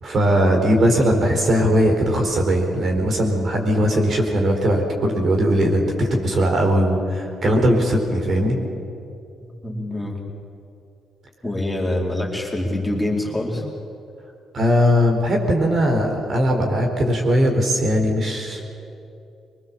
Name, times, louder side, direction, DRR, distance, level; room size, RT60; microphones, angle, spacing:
voice 1, 0.0-8.6 14.5-18.7, equal, 50° right, 2 dB, 4.3 m, -19 dB
voice 2, 9.6-10.2 11.4-13.6, left 1 dB, 10° left, -2 dB, 4.3 m, -25 dB
23.5 x 20.5 x 7.5 m, 2.6 s
cardioid pair, 90°, 0 cm